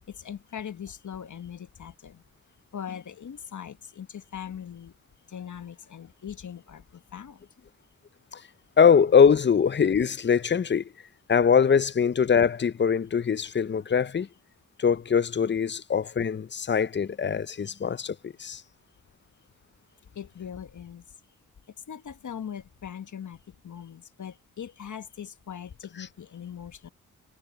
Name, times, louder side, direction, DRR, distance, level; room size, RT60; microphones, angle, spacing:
voice 1, 0.0-2.2 2.7-4.9 5.3-7.5 20.1-21.0 21.9-26.9, left 8 dB, 55° left, 1.3 m, -40 dB
voice 2, 8.8-10.8 11.3-14.3 14.8-18.6, left 6 dB, 30° left, 0.6 m, -22 dB
supercardioid pair, 45°, 36 cm